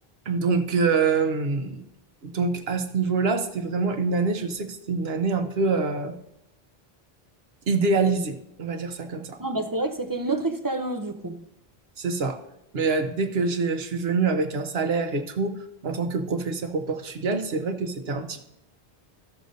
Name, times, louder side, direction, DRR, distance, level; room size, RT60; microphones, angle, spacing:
voice 1, 0.3-1.8 2.2-6.1 7.7-9.4 12.0-12.4 12.7-15.5 15.8-18.4, right 4 dB, 75° right, 1.2 m, -25 dB
voice 2, 9.4-11.4, right 2 dB, 25° right, 0.5 m, -28 dB
15.0 x 6.5 x 2.7 m
omnidirectional pair, 1.0 m